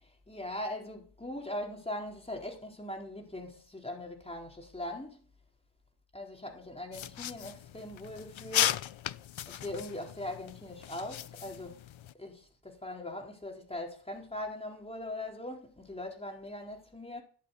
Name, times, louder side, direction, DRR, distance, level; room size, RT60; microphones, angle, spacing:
voice 1, 0.0-5.2 6.1-8.8 9.5-11.8 12.2-17.2, left 1 dB, 15° left, 4.2 m, -40 dB
sound 1, 6.9-12.1, left 11 dB, 85° left, 0.9 m, -36 dB
17.0 x 7.5 x 8.4 m
wide cardioid pair, 140°, 45 cm